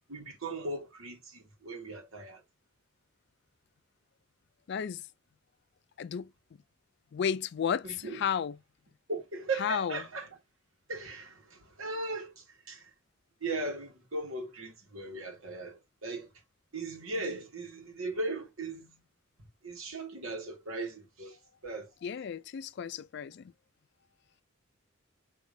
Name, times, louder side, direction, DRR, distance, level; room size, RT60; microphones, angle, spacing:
voice 1, 0.1-2.4 7.8-8.2 9.1-10.3 10.9-12.9 13.4-16.3 16.7-18.9 19.6-21.4 21.6-21.9, right 2 dB, 80° right, 1.6 m, -38 dB
voice 2, 4.7-5.0 6.0-6.3 7.1-8.6 9.6-10.0 22.0-23.5, left 7 dB, 55° left, 0.3 m, -33 dB
4.9 x 3.0 x 2.6 m
head